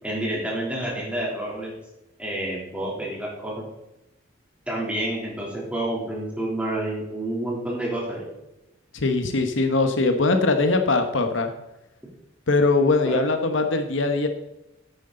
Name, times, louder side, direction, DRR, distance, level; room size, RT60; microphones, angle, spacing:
voice 1, 0.0-1.7 2.2-3.5 4.7-8.3 13.0-13.2, right 1 dB, 5° right, -4 dB, 3.1 m, -29 dB
voice 2, 8.9-11.5 12.5-14.3, left 3 dB, 75° left, 7 dB, 1.1 m, -21 dB
9.8 x 9.1 x 3.8 m, 0.92 s
head